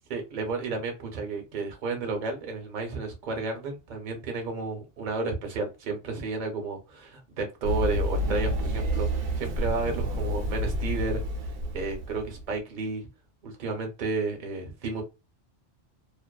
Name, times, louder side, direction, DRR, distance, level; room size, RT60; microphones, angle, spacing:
voice 1, 0.1-13.1 13.4-15.0, right 4 dB, 45° right, 0.7 m, -32 dB
Run, 7.6-12.4, equal, 80° right, 1.0 m, -29 dB
2.5 x 2.3 x 2.3 m
omnidirectional pair, 1.2 m